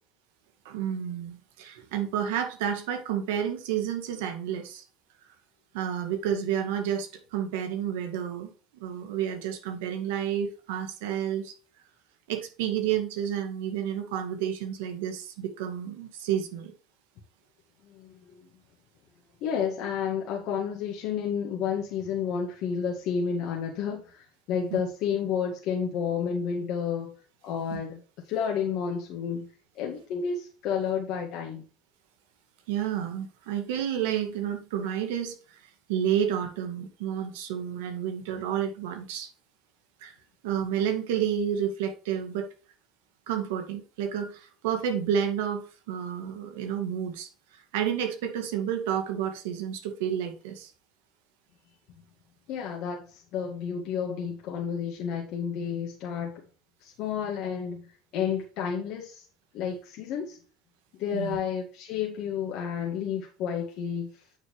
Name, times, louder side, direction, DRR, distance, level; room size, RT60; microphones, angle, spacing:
voice 1, 0.7-4.8 5.7-11.5 12.3-16.7 24.7-24.8 27.7-27.8 32.7-35.4 35.9-39.3 40.0-40.1 40.4-42.5 43.3-47.3 47.7-50.7 61.1-61.4, right 9 dB, 80° right, 2.0 m, -30 dB
voice 2, 17.9-18.5 19.4-27.1 27.4-28.0 28.3-29.5 29.8-31.7 52.5-56.3 56.8-59.2 59.5-60.4 61.0-64.1, left 7 dB, 65° left, 1.9 m, -31 dB
9.0 x 6.4 x 3.2 m
hypercardioid pair, 80°, 0 cm